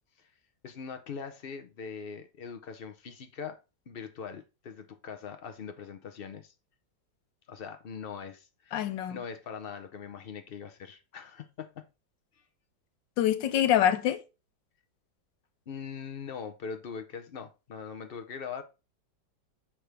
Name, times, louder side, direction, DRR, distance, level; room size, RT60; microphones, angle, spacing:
voice 1, 0.6-3.6 3.9-6.5 7.5-11.8 15.7-18.6, left 6 dB, 70° left, 0.5 m, -41 dB
voice 2, 8.7-9.2 13.2-14.2, left 11 dB, 90° left, 1.5 m, -25 dB
6.2 x 5.9 x 3.3 m
omnidirectional pair, 1.9 m